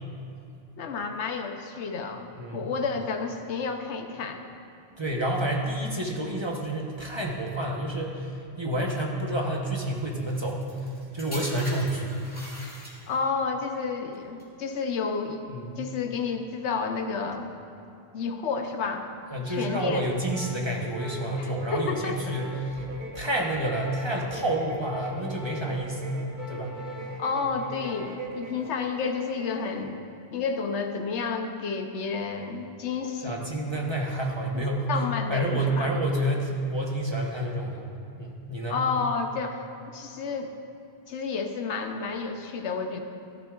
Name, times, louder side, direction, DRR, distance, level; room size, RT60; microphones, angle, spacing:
voice 1, 0.8-2.3 2.5-4.4 13.1-15.4 15.8-17.5 18.1-19.1 19.5-20.0 21.4-22.1 27.2-30.0 30.3-33.4 34.5-34.6 34.9-35.9 38.7-40.5 41.1-43.0, left 5 dB, 85° left, 5 dB, 1.1 m, -30 dB
voice 2, 5.0-10.6 11.1-12.2 15.5-15.8 19.3-22.9 23.1-26.2 26.5-26.8 33.2-35.0 35.3-37.9 38.2-38.8, right 1 dB, 25° right, -1 dB, 0.9 m, -29 dB
sound 1, 10.3-13.3 14.1-14.4, equal, 10° left, 2.2 m, -42 dB
Organ, 18.4-28.4 28.7-29.0, left 3 dB, 50° left, 0.7 m, -49 dB
sound 2, 21.4-29.9, right 1 dB, 45° right, 1.2 m, -41 dB
14.0 x 12.0 x 2.4 m, 2.6 s
omnidirectional pair, 1.1 m